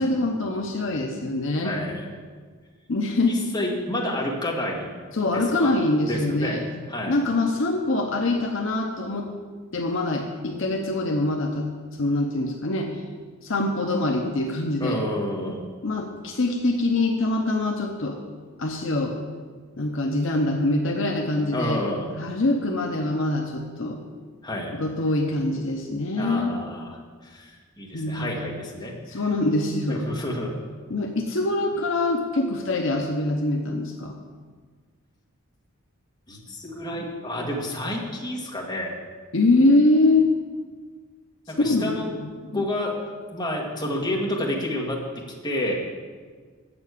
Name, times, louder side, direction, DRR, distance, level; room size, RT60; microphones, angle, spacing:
voice 1, 0.0-1.8 2.9-3.4 5.1-6.6 7.1-9.3 9.7-11.7 12.0-12.9 13.4-15.0 15.8-18.2 18.6-19.1 19.8-21.8 22.2-24.0 24.7-26.6 27.9-28.3 29.1-30.0 30.9-34.2 39.3-40.3 41.6-42.7, left 2 dB, 60° left, 2 dB, 0.8 m, -24 dB
voice 2, 1.6-2.1 3.3-4.9 5.3-5.7 6.1-6.6 6.9-7.2 14.8-15.7 21.5-22.1 24.4-24.7 26.2-27.0 27.2-29.2 29.9-30.5 36.3-38.9 41.5-42.1 42.5-43.0 43.3-45.8, left 1 dB, 20° left, -3 dB, 1.6 m, -29 dB
7.5 x 7.1 x 8.3 m, 1.6 s
head